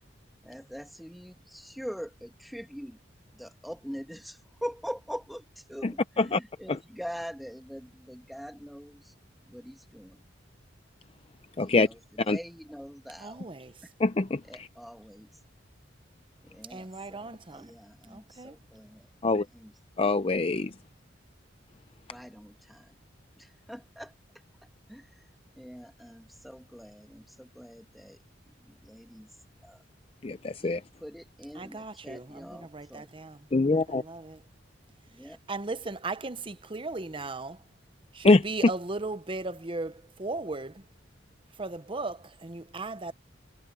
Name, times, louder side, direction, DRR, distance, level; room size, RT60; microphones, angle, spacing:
voice 1, 0.4-3.0 3.4-5.4 5.7-9.0 9.5-10.2 11.6-11.8 12.3-13.4 14.5-15.3 16.5-19.1 19.5-19.7 22.1-22.9 23.7-24.1 24.9-25.0 25.6-28.2 28.7-29.3 29.6-29.8 31.0-33.1 35.1-35.4, equal, ahead, 2.2 m, -43 dB
voice 2, 5.8-6.4 6.7-6.8 11.6-11.9 12.3-12.4 14.0-14.7 19.2-19.4 20.0-20.7 30.2-30.8 33.5-34.0 38.2-38.4, left 3 dB, 30° left, 0.6 m, -24 dB
voice 3, 13.2-13.9 16.7-17.8 18.1-18.6 31.5-33.5 33.9-34.4 35.2-37.6 38.1-40.8 41.6-43.1, right 3 dB, 30° right, 0.8 m, -37 dB
head